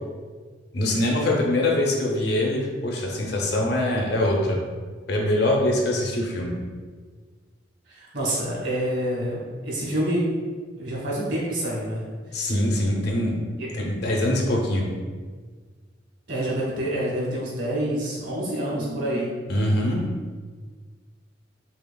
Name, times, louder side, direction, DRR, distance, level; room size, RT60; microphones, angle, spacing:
voice 1, 0.7-4.6 5.1-6.5 12.3-13.4 13.7-14.9 19.5-20.0, left 1 dB, 65° left, 0 dB, 0.7 m, -23 dB
voice 2, 7.9-10.3 10.8-12.0 13.6-13.7 16.3-19.3, right 1 dB, 70° right, -5 dB, 1.4 m, -27 dB
5.5 x 2.4 x 2.3 m, 1.5 s
head